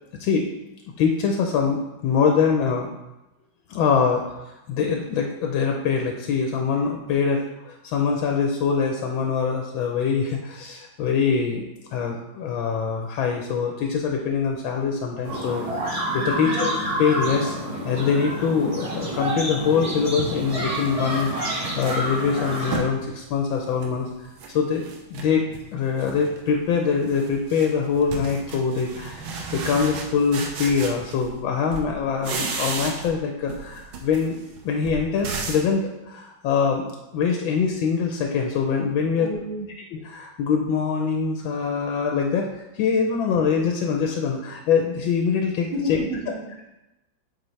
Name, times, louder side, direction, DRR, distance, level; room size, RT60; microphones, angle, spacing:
voice 1, 0.1-0.5 1.0-2.9 3.7-4.2 4.7-15.6 16.1-17.6 17.8-34.4 34.6-39.3 39.9-42.5 42.7-46.0, left 6 dB, 80° left, 2 dB, 1.4 m, -24 dB
sound 1, 15.2-22.8, right 1 dB, 25° right, 0.8 m, -28 dB
voice 2, 16.3-16.6 39.0-39.7 45.7-46.7, equal, 55° right, -6 dB, 2.4 m, -31 dB
sound 2, 19.5-19.6 20.2-23.0 23.4-24.5 24.8-25.7 26.0-26.4 26.7-31.4 31.7-33.2 33.5-35.7, right 4 dB, 85° right, 1.7 m, -34 dB
7.7 x 4.2 x 3.1 m, 0.96 s
omnidirectional pair, 2.2 m